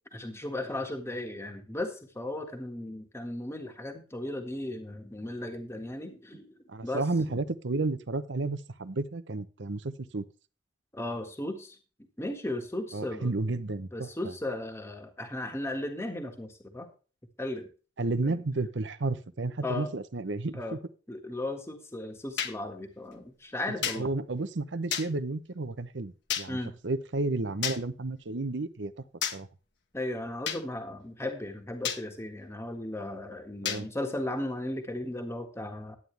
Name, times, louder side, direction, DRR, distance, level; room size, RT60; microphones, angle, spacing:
voice 1, 0.1-6.5 6.8-7.0 10.9-11.8 12.2-13.3 13.9-16.9 17.4-17.7 18.2-18.4 19.6-19.9 20.5-20.8 21.1-24.1 26.5-26.7 29.9-36.0, left 1 dB, 15° left, 4 dB, 1.6 m, -36 dB
voice 2, 6.7-10.2 12.9-14.3 18.0-20.6 23.8-26.6 26.8-28.9 29.3-29.5 33.6-33.9, right 3 dB, 70° right, 14 dB, 0.8 m, -32 dB
sound 1, 22.4-22.5 23.8-24.0 24.9-25.1 26.3-26.5 27.6-27.8 29.2-29.4 30.5-30.6 31.8-32.0 33.7-33.8, left 8 dB, 65° left, 1.6 m, -30 dB
11.0 x 9.4 x 3.3 m, 0.35 s
head